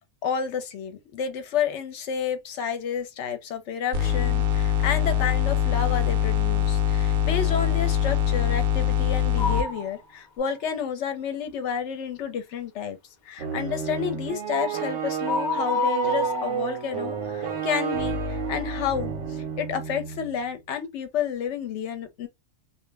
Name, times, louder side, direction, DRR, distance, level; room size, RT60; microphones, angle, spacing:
voice 1, 0.2-13.0 13.2-22.3, left 7 dB, 70° left, 0.9 m, -30 dB
sound 1, 3.9-9.7, left 10 dB, 55° right, 0.7 m, -23 dB
sound 2, 9.4-9.9 10.4-10.5 14.5-14.8 15.2-17.2, left 4 dB, 55° left, 0.5 m, -29 dB
sound 3, 13.4-20.3, right 7 dB, 75° right, 1.0 m, -30 dB
2.4 x 2.0 x 3.2 m
omnidirectional pair, 1.3 m